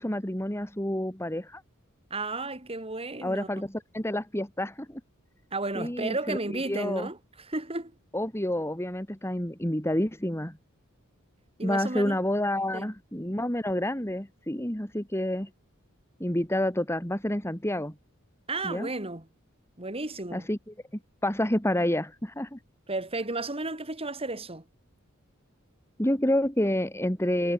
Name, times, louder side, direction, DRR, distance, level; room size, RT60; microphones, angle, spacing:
voice 1, 0.0-1.6 3.2-5.0 5.8-7.1 8.1-10.6 11.6-15.5 16.2-17.9 18.6-18.9 20.3-20.7 21.2-22.6 26.0-27.5, left 1 dB, 10° left, 3.8 m, -29 dB
voice 2, 2.1-3.5 5.5-7.2 7.5-7.9 11.6-12.2 12.7-12.9 18.5-19.3 19.8-20.5 22.9-24.6, right 2 dB, 30° right, 4.3 m, -33 dB
head